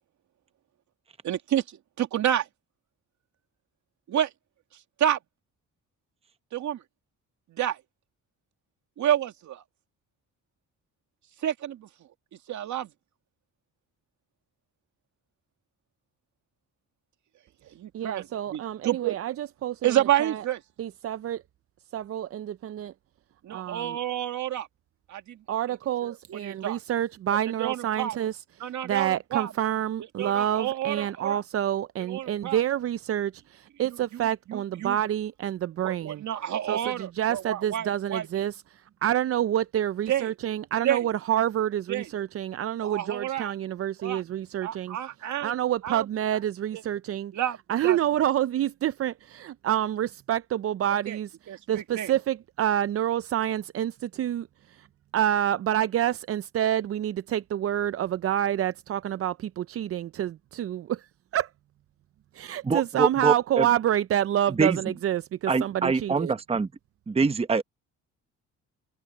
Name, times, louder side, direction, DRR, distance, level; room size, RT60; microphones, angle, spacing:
voice 1, 1.2-2.5 4.1-4.3 5.0-5.2 6.5-6.8 7.5-7.8 9.0-9.6 11.4-11.9 12.5-12.9 17.7-19.2 19.8-20.6 23.4-24.7 25.1-25.4 26.0-26.8 27.3-28.2 28.6-29.5 30.2-31.4 32.0-32.6 33.9-34.2 34.5-35.0 35.8-38.4 40.1-40.3 40.8-41.1 41.9-42.1 42.8-43.5 44.0-44.2 44.6-45.5 45.8-46.1 46.7-46.8 47.3-47.6 47.8-48.0 51.1-51.2 51.5-52.1, right 11 dB, 70° right, 2.4 m, -29 dB
voice 2, 17.9-19.8 20.2-20.4 20.8-21.4 21.9-22.9 23.5-24.0 25.5-36.2 36.7-38.5 39.0-45.0 45.4-47.3 47.7-51.3 51.7-54.9 55.1-61.0 61.3-61.5 62.3-66.3, right 11 dB, 50° right, 0.5 m, -28 dB
voice 3, 62.6-63.7 64.5-64.9 65.5-66.7 67.1-67.6, right 4 dB, 20° right, 0.9 m, -24 dB
cardioid pair, 90°, 30 cm